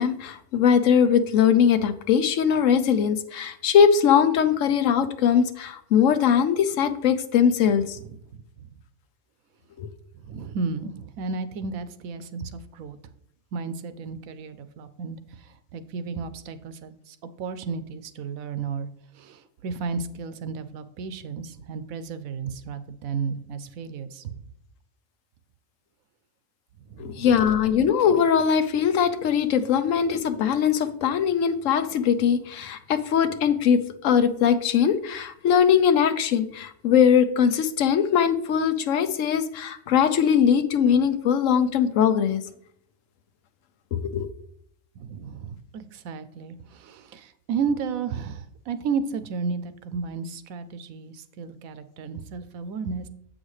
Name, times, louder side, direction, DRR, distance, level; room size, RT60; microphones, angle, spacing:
voice 1, 0.0-8.0 9.8-9.9 27.0-42.4 44.1-44.3, left 7 dB, 70° left, 10 dB, 1.0 m, -21 dB
voice 2, 8.0-8.4 10.2-13.0 13.5-18.9 19.1-24.3 26.9-27.3 45.0-53.1, right 5 dB, 80° right, 12 dB, 1.1 m, -33 dB
8.0 x 6.3 x 3.2 m, 0.69 s
omnidirectional pair, 1.4 m